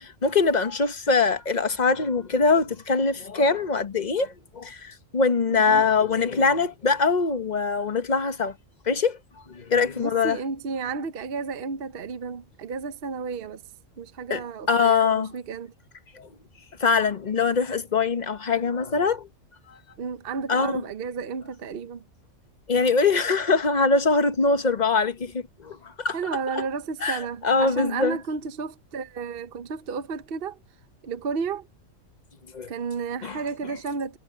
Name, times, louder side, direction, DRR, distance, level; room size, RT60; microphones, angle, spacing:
voice 1, 0.2-8.5 8.9-9.2 9.5-10.4 14.3-14.4 14.7-15.3 16.1-16.3 16.8-19.3 19.7-19.8 20.5-20.7 22.7-26.2 27.0-28.2 32.5-32.7 33.2-33.4, left 4 dB, 35° left, 1.1 m, -23 dB
voice 2, 5.5-5.8 10.0-13.6 14.0-15.7 20.0-22.0 26.1-30.6 31.0-31.7 32.7-34.2, right 5 dB, 50° right, 0.9 m, -32 dB
omnidirectional pair, 1.4 m